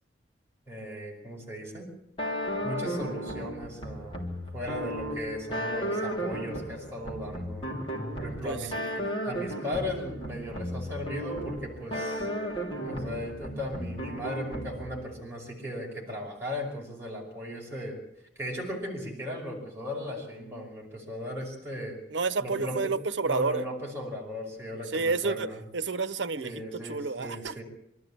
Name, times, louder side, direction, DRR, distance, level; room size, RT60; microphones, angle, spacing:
voice 1, 0.7-1.9 2.6-7.7 8.2-8.7 9.0-12.3 12.8-18.0 18.3-22.0 22.4-22.9 23.2-25.6 26.4-27.6, left 1 dB, 15° right, 5.2 m, -37 dB
sound 1, 2.2-15.1, equal, 30° left, 3.2 m, -35 dB
voice 2, 8.4-9.0 22.1-23.6 24.9-27.5, right 4 dB, 85° right, 0.9 m, -30 dB
25.0 x 13.5 x 8.6 m
head